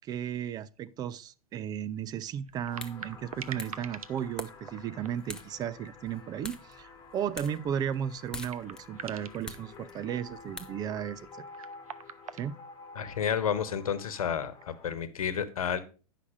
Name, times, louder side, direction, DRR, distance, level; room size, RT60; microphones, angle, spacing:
voice 1, 0.0-11.5 12.4-12.6, right 9 dB, 20° right, 0.4 m, -35 dB
sound 1, 0.8-0.9 1.2-1.3 2.4-5.9 6.3-6.6 7.0-7.1 8.0-8.1 8.4-9.6 11.1-13.2 14.3-15.0, right 8 dB, 80° right, 0.7 m, -45 dB
sound 2, 2.5-11.3, left 2 dB, 5° left, 0.9 m, -48 dB
sound 3, 2.6-14.9, left 4 dB, 20° left, 1.8 m, -51 dB
voice 2, 12.9-15.8, left 8 dB, 75° left, 1.1 m, -31 dB
9.8 x 5.8 x 4.9 m
hypercardioid pair, 115°, 18 cm